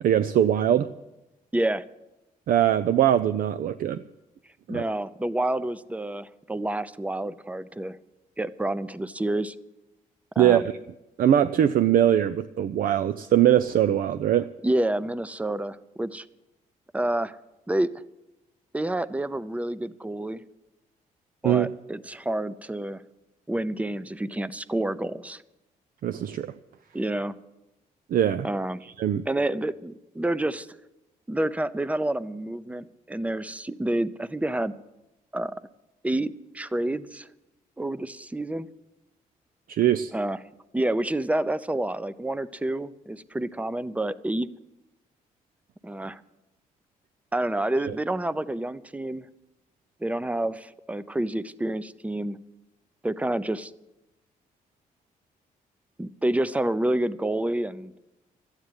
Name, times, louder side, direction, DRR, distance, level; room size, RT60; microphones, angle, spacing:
voice 1, 0.0-0.9 2.5-4.0 4.7-4.8 10.4-10.6 11.2-14.5 21.4-21.7 26.0-26.5 28.1-28.5 29.0-29.2 39.7-40.1, right 10 dB, 70° right, 13 dB, 0.5 m, -21 dB
voice 2, 1.5-1.8 4.7-8.0 8.4-9.6 10.4-10.7 14.6-16.3 16.9-17.4 17.7-17.9 18.7-20.4 21.4-23.0 23.5-25.4 26.9-27.4 28.4-28.9 29.3-30.7 31.3-34.7 35.3-35.6 36.0-37.3 37.8-38.7 40.1-40.4 40.7-44.5 45.8-46.2 47.3-49.3 50.0-52.4 53.0-53.7 56.0-57.9, right 1 dB, 10° right, 16 dB, 0.6 m, -28 dB
13.0 x 9.0 x 9.7 m, 0.99 s
cardioid pair, 85°, 15 cm